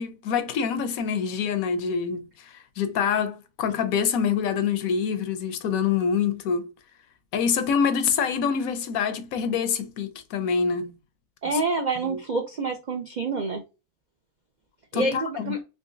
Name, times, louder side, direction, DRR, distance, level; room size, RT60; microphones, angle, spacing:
voice 1, 0.0-6.7 7.3-10.9 11.5-11.6 12.0-12.2 14.9-15.6, left 6 dB, 75° left, 1.0 m, -26 dB
voice 2, 11.4-13.6 14.9-15.6, right 3 dB, 65° right, 0.4 m, -27 dB
3.7 x 2.9 x 2.6 m
omnidirectional pair, 1.5 m